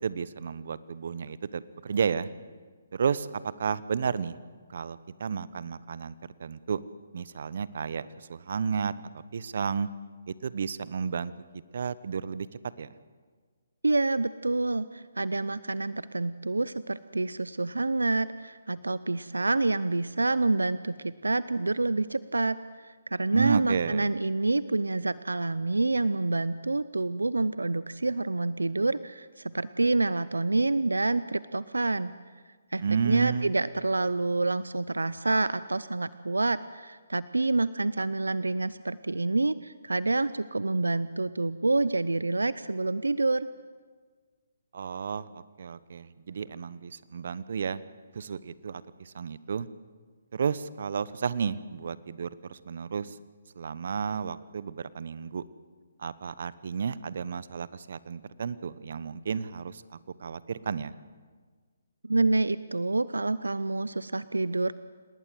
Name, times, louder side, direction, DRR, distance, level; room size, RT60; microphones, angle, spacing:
voice 1, 0.0-2.3 2.9-4.4 4.7-6.8 7.1-9.9 10.3-11.3 11.7-12.5 12.8-12.9 23.3-24.1 32.8-33.5 44.7-47.8 48.1-49.7 50.3-53.2 53.6-55.4 56.0-59.8 60.2-60.9, right 6 dB, 60° right, 17 dB, 1.0 m, -32 dB
voice 2, 13.8-32.1 32.7-43.5 62.0-64.7, right 2 dB, 90° right, 16 dB, 0.6 m, -27 dB
28.0 x 19.5 x 7.8 m, 1.5 s
figure-of-eight pair, 145°, 0 cm